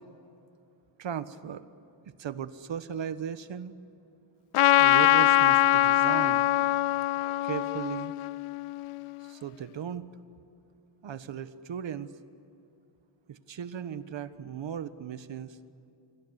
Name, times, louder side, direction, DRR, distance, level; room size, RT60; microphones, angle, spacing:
voice 1, 1.0-1.6 2.0-3.7 4.8-6.5 7.4-8.1 9.2-10.1 11.0-12.1 13.3-15.6, right 8 dB, 65° right, 13 dB, 1.4 m, -36 dB
Trumpet, 4.5-9.2, left 14 dB, 90° left, 0.6 m, -23 dB
27.5 x 24.0 x 8.1 m, 2.8 s
cardioid pair, 100°, 48 cm